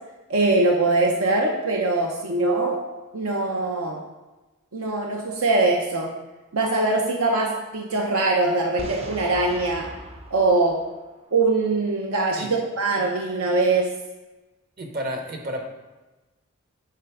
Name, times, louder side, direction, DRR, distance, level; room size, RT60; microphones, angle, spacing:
voice 1, 0.3-2.8 3.1-4.0 4.7-6.1 6.5-9.9 10.3-10.8 11.3-13.9, right 2 dB, 85° right, 0 dB, 0.7 m, -22 dB
Boom, 8.8-11.6, right 1 dB, 30° right, 0.5 m, -40 dB
voice 2, 14.8-15.7, equal, 45° right, 3 dB, 0.9 m, -31 dB
8.3 x 3.4 x 4.7 m, 1.1 s
head